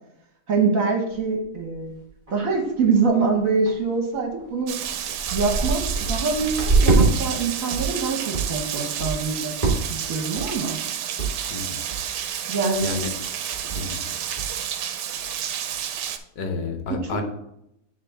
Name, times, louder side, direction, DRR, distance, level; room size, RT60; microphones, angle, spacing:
voice 1, 0.5-1.9 2.3-4.8 5.3-10.8 12.5-12.9 17.0-17.2, right 4 dB, 55° right, 2 dB, 1.6 m, -24 dB
sound 1, 1.1-1.2 1.7-1.8 2.0-2.5 2.8-3.1 3.7-3.8 4.4-4.5 4.8-7.1 7.5-8.0 8.3-8.6 9.0-9.3 9.6-10.0 10.3-10.7 11.2-11.3 11.6-11.7 11.9-12.3 12.7-12.9 13.2-13.3 13.5-13.9 14.4-14.5, right 3 dB, 25° right, 1.4 m, -24 dB
Rain, 4.7-16.2, right 9 dB, 85° right, 1.2 m, -30 dB
voice 2, 11.5-11.8 12.8-13.1 13.7-14.1 16.4-17.2, left 4 dB, 90° left, 5 dB, 1.6 m, -30 dB
9.8 x 3.5 x 3.7 m, 0.80 s
omnidirectional pair, 1.8 m